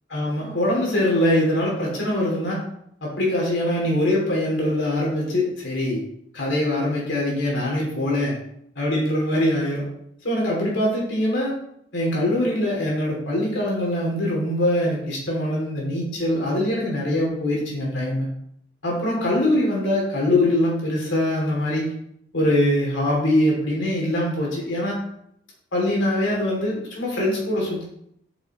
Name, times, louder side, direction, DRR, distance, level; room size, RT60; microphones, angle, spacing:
voice 1, 0.1-2.6 3.0-6.0 6.3-8.4 8.8-9.8 10.2-11.5 11.9-18.3 18.8-21.9 22.3-25.0 25.7-27.8, left 1 dB, 85° left, -3 dB, 2.6 m, -23 dB
8.0 x 5.9 x 3.0 m, 0.72 s
head